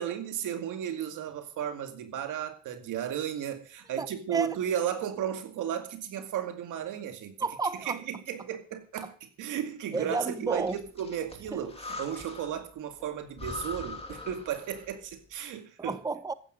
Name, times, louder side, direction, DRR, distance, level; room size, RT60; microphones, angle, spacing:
voice 1, 0.0-7.4 7.9-16.0, right 9 dB, 85° right, 2.2 m, -34 dB
voice 2, 4.0-4.5 7.4-8.0 9.9-10.8 11.5-11.6 15.8-16.3, right 3 dB, 10° right, 0.9 m, -31 dB
Breathing, 10.5-12.7 13.0-13.1 13.4-15.0, left 3 dB, 20° left, 2.6 m, -42 dB
14.5 x 11.0 x 5.1 m
cardioid pair, 90°, 30 cm